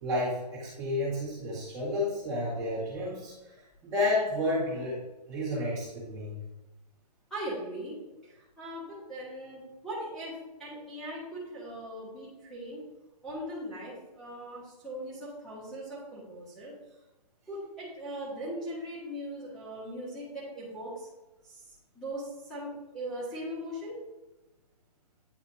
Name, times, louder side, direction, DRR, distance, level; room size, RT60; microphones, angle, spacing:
voice 1, 0.0-5.0 5.3-6.4, left 1 dB, 15° right, -7 dB, 1.7 m, -31 dB
voice 2, 7.3-8.0 8.2-10.3 10.6-12.8 13.2-16.7 17.5-21.1 21.4-23.9, right 1 dB, ahead, -11 dB, 1.5 m, -39 dB
9.6 x 4.0 x 2.8 m, 1.1 s
hypercardioid pair, 165°, 21 cm